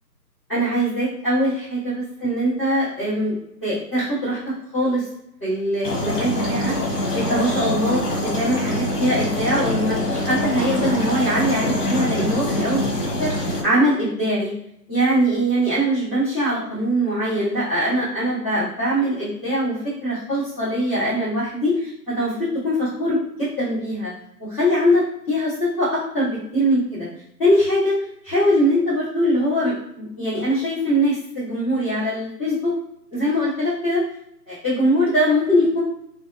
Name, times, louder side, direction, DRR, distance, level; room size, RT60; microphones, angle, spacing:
voice 1, 0.5-4.4 4.7-5.1 5.4-14.5 14.9-24.1 24.4-27.1 27.4-28.0 28.2-32.7 33.1-34.0 34.5-35.8, equal, 15° left, -19 dB, 1.5 m, -22 dB
sound 1, 5.8-13.6, left 1 dB, 65° left, 1.1 m, -24 dB
2.6 x 2.1 x 2.6 m, 0.77 s
hypercardioid pair, 165°, 49 cm